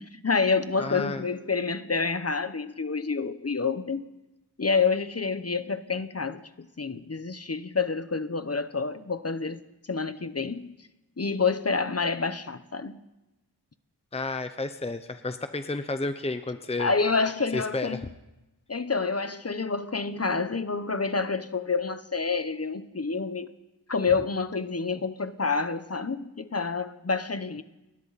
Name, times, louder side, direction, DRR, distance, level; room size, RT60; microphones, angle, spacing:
voice 1, 0.0-4.0 4.6-6.4 6.8-9.6 9.9-10.7 11.2-13.0 16.8-18.0 18.7-23.5 23.9-27.6, left 4 dB, 35° left, 1.0 m, -28 dB
voice 2, 0.8-1.2 14.1-16.9 17.5-18.1, left 2 dB, 15° left, 0.8 m, -31 dB
29.5 x 21.0 x 4.2 m
wide cardioid pair, 100°, 41 cm